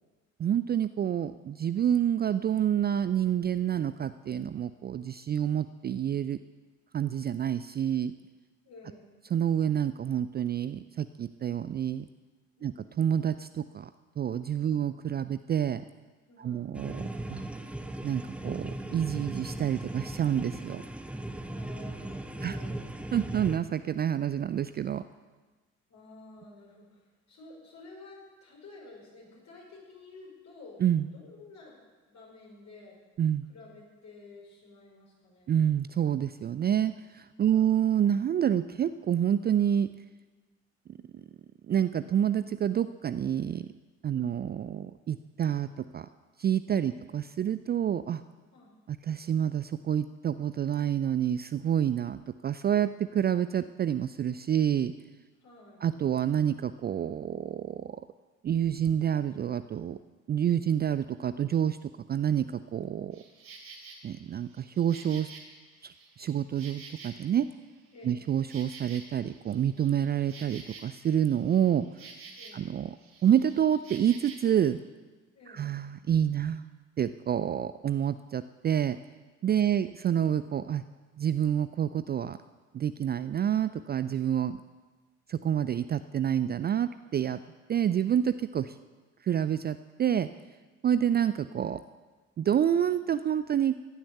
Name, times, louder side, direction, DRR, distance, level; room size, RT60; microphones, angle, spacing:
voice 1, 0.4-6.4 6.9-8.1 9.3-12.1 12.6-13.9 14.2-15.8 16.4-17.4 18.0-20.8 22.4-22.6 23.1-25.0 30.8-31.0 33.2-33.4 35.5-39.9 41.7-43.7 44.0-46.1 46.4-48.2 49.0-54.9 55.8-57.9 58.4-60.0 60.3-61.8 62.1-62.5 62.7-63.2 64.0-65.3 65.8-65.9 66.2-67.5 68.0-71.8 72.5-72.9 73.2-74.8 75.5-76.7 77.0-79.0 79.4-80.8 81.2-82.4 82.7-84.6 85.3-87.4 87.7-88.7 89.2-90.3 90.8-91.8 92.4-93.8, right 9 dB, 25° right, 13 dB, 0.4 m, -28 dB
voice 2, 8.6-9.1 12.6-12.9 14.7-14.8 16.3-16.8 21.5-23.0 25.9-30.8 31.1-31.8 32.1-33.1 33.5-35.6 37.4-37.8 44.1-44.4 46.9-47.1 48.5-48.7 55.4-55.9 67.9-68.3 72.4-72.7 75.3-75.7 79.5-79.9, left 3 dB, 50° left, -2 dB, 5.3 m, -52 dB
sound 1, 16.7-23.6, right 1 dB, 5° right, 1.0 m, -38 dB
Insect, 63.1-64.0 64.5-67.5 67.9-72.7 73.0-74.5, right 4 dB, 50° right, 2.8 m, -49 dB
14.0 x 10.5 x 6.8 m, 1.3 s
figure-of-eight pair, 45°, 36 cm